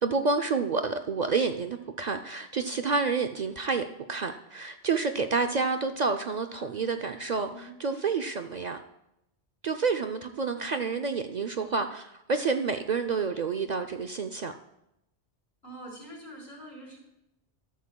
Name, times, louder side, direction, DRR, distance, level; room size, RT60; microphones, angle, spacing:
voice 1, 0.0-8.8 9.6-14.5, right 4 dB, 50° right, 6 dB, 0.6 m, -29 dB
voice 2, 5.5-6.1 6.6-7.0 7.5-7.7 15.6-17.0, right 1 dB, 70° left, -3 dB, 4.0 m, -46 dB
13.5 x 12.5 x 2.3 m, 0.83 s
omnidirectional pair, 1.1 m